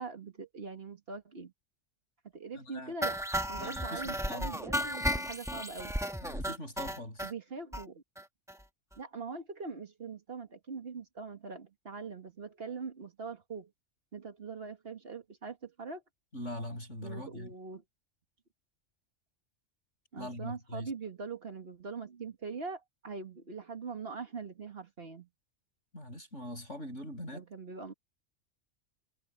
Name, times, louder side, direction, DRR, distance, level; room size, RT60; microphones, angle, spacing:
voice 1, 0.0-1.5 2.3-3.2 3.5-6.0 7.2-8.0 9.0-13.7 14.1-16.0 17.0-17.8 20.1-25.3 27.3-27.9, right 4 dB, 55° right, 1.9 m, -42 dB
voice 2, 2.6-2.9 3.6-4.5 6.2-7.3 16.3-17.5 20.2-20.9 25.9-27.5, left 1 dB, 75° left, 8.2 m, -42 dB
sound 1, 3.0-7.3 7.7-7.8 8.2-8.3 8.5-8.6 8.9-9.0, equal, 5° right, 1.1 m, -34 dB
omnidirectional pair, 1.2 m